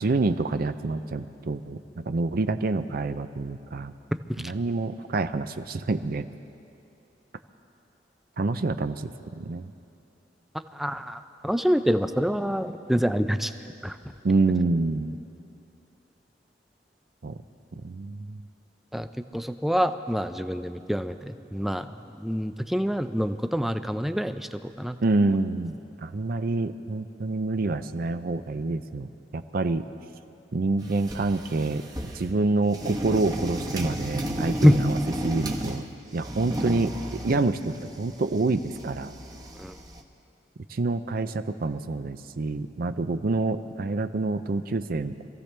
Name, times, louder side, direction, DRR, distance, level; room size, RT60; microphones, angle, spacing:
voice 1, 0.0-3.9 4.4-6.3 8.4-9.7 14.2-15.2 17.2-17.4 17.8-18.4 25.0-25.7 26.0-29.8 30.5-31.8 32.1-35.0 35.2-35.9 36.1-39.1 40.7-45.3, right 3 dB, 55° right, 10 dB, 0.5 m, -27 dB
voice 2, 10.7-13.5 13.8-14.0 18.9-19.1 19.3-25.0 34.6-34.8 39.6-39.7, equal, ahead, 9 dB, 0.4 m, -26 dB
sound 1, 30.8-32.3 32.7-35.9 36.2-40.0, equal, 20° right, 1.1 m, -34 dB
26.0 x 15.0 x 3.3 m, 2.7 s
head